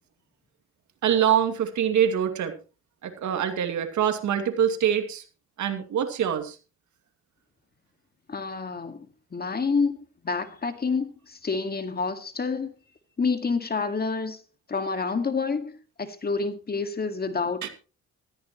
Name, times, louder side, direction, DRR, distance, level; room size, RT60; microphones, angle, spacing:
voice 1, 1.0-2.5 3.0-5.2 5.6-6.6 17.6-17.7, right 9 dB, 70° right, 2.4 m, -24 dB
voice 2, 8.3-10.0 10.2-12.7 13.2-14.4 14.7-17.7, left 4 dB, 30° left, 2.0 m, -28 dB
15.5 x 14.5 x 3.1 m
cardioid pair, 90°, 30 cm